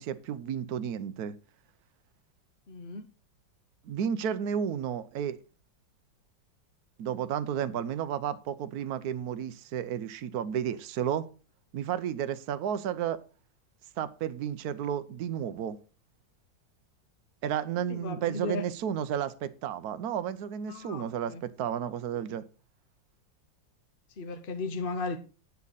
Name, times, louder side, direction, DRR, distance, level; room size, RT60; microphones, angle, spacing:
voice 1, 0.0-1.4 3.8-5.4 7.0-11.3 11.7-13.2 14.0-15.8 17.4-22.4, right 9 dB, 60° right, 1.2 m, -32 dB
voice 2, 2.7-3.1 17.9-18.6 20.7-21.4 24.2-25.2, left 3 dB, 45° left, 0.7 m, -35 dB
11.0 x 8.3 x 4.1 m
omnidirectional pair, 2.1 m